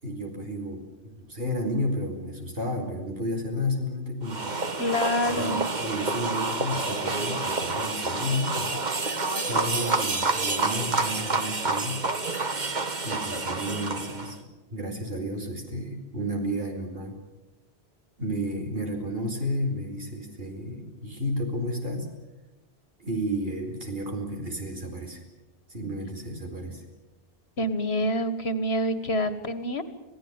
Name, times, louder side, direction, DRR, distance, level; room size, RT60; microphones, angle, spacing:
voice 1, 0.0-4.6 5.3-8.8 9.4-12.1 13.0-14.4 14.7-17.2 18.2-22.1 23.0-25.2 25.7-26.8, equal, 65° right, 3 dB, 4.8 m, -32 dB
sound 1, 4.3-14.4, right 3 dB, 45° right, 1.6 m, -28 dB
voice 2, 4.8-5.7 27.6-29.8, equal, 80° left, 11 dB, 1.9 m, -27 dB
27.0 x 17.0 x 9.0 m, 1.1 s
omnidirectional pair, 1.1 m